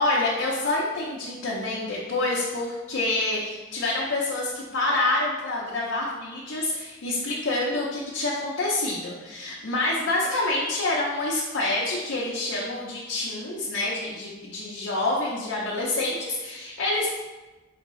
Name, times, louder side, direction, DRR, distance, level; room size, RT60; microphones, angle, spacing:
voice 1, 0.0-17.1, left 2 dB, 70° left, -6 dB, 0.6 m, -27 dB
4.9 x 2.6 x 3.0 m, 1.2 s
head